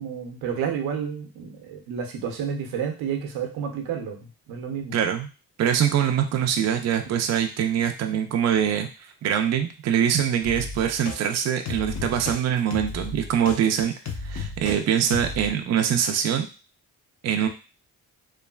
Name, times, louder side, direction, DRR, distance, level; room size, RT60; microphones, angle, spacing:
voice 1, 0.0-4.2 4.5-5.0 7.1-7.2, right 7 dB, 85° right, 3 dB, 0.7 m, -30 dB
voice 2, 4.9-5.3 5.6-13.9 14.2-16.5 17.2-17.5, right 9 dB, 45° right, 5 dB, 0.4 m, -23 dB
sound 1, 10.4-11.2 11.6-12.4 12.7-14.8 15.1-15.5, left 4 dB, 50° left, 0.8 m, -34 dB
3.1 x 2.3 x 2.3 m, 0.32 s
cardioid pair, 80°, 37 cm